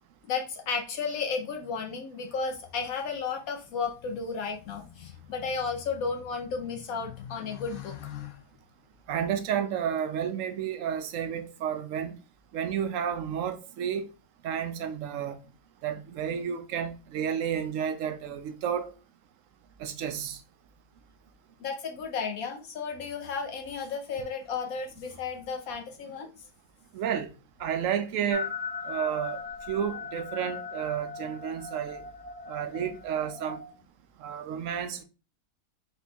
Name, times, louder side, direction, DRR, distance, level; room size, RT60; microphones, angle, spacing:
voice 1, 0.2-8.4 21.6-26.3, left 5 dB, 75° left, 1.1 m, -33 dB
voice 2, 9.1-12.2 12.5-14.1 14.4-15.4 15.8-18.9 19.8-20.4 26.9-27.3 27.6-28.5 28.9-29.4 29.7-32.0 32.5-33.6 34.2-35.0, right 8 dB, 70° right, 0.9 m, -31 dB
sound 1, 28.3-33.7, left 4 dB, 15° left, 0.3 m, -39 dB
4.2 x 4.2 x 2.3 m
omnidirectional pair, 1.6 m